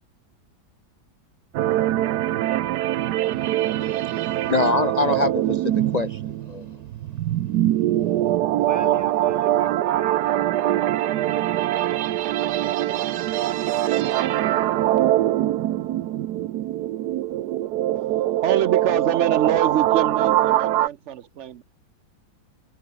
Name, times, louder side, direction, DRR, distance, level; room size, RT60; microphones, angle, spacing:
sound 1, 1.5-20.9, right 13 dB, 65° right, 1.1 m, -23 dB
voice 1, 3.8-6.2 6.5-6.7, left 3 dB, 40° left, 0.5 m, -25 dB
voice 2, 8.6-11.9, equal, 10° right, 5.5 m, -43 dB
voice 3, 18.4-21.6, right 10 dB, 85° right, 0.6 m, -25 dB
omnidirectional pair, 2.1 m